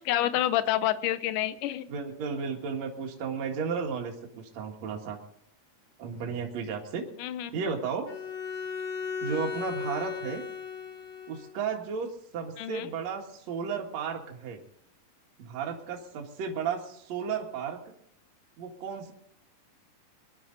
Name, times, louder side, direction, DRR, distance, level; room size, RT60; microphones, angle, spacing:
voice 1, 0.1-1.9 7.2-7.6 12.6-12.9, left 13 dB, 75° left, 13 dB, 2.3 m, -28 dB
voice 2, 1.9-5.2 6.0-7.1 7.5-8.1 9.2-10.4 11.3-14.6 15.4-17.8 18.6-19.1, right 6 dB, 55° right, 1 dB, 2.8 m, -34 dB
Bowed string instrument, 8.1-11.6, left 6 dB, 35° left, 3.3 m, -36 dB
23.0 x 11.0 x 4.0 m, 0.71 s
omnidirectional pair, 3.9 m